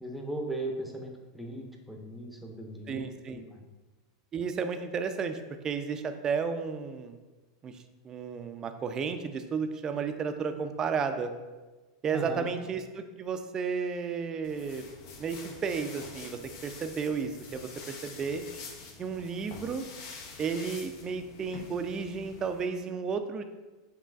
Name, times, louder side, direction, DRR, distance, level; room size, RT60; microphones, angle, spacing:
voice 1, 0.0-3.0 3.3-3.6 12.1-12.5, right 1 dB, ahead, 1 dB, 0.8 m, -38 dB
voice 2, 2.9-3.4 4.3-7.2 7.6-7.7 8.0-11.3 12.0-14.8 15.2-18.4 19.0-19.8 20.4-23.4, right 5 dB, 30° right, 8 dB, 0.4 m, -33 dB
sound 1, 14.4-22.7, left 4 dB, 60° left, 0.8 m, -46 dB
7.3 x 3.0 x 2.4 m, 1.2 s
hypercardioid pair, 110°, 2 cm